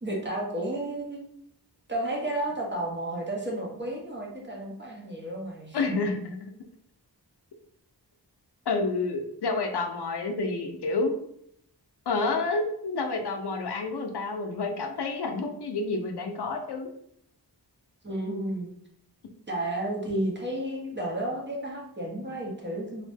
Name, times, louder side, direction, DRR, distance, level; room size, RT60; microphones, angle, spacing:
voice 1, 0.0-1.2 1.9-6.0 18.0-18.7 19.5-23.0, right 1 dB, 25° right, -1 dB, 0.7 m, -32 dB
voice 2, 5.7-6.5 8.7-11.2 12.1-16.9, left 3 dB, 70° left, 4 dB, 0.5 m, -29 dB
2.6 x 2.1 x 3.3 m, 0.72 s
wide cardioid pair, 65°, 41 cm